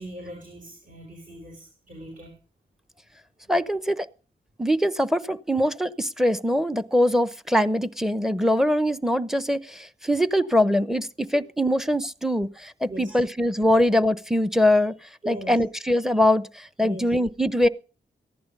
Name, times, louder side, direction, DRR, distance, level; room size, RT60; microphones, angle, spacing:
voice 1, 0.0-2.4 12.9-13.2 15.2-15.5 16.8-17.1, right 1 dB, 45° right, 4.4 m, -39 dB
voice 2, 3.5-4.1 4.6-14.9 15.3-17.7, left 1 dB, ahead, 0.8 m, -22 dB
15.0 x 11.0 x 5.4 m
wide cardioid pair, 105°, 19 cm